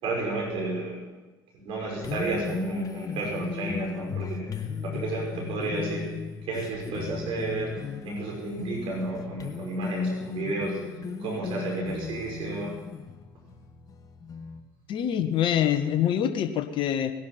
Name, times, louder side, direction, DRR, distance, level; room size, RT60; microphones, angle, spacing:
voice 1, 0.0-1.1 1.5-4.5 4.8-6.1 6.5-7.7 8.0-10.8 11.2-12.7, right 2 dB, 55° right, -1 dB, 5.5 m, -31 dB
sound 1, 2.0-14.6, left 5 dB, 35° left, 1.8 m, -36 dB
voice 2, 14.9-17.1, left 10 dB, 50° left, 8 dB, 1.4 m, -25 dB
19.5 x 11.5 x 5.8 m, 1.1 s
hypercardioid pair, 65°, 11 cm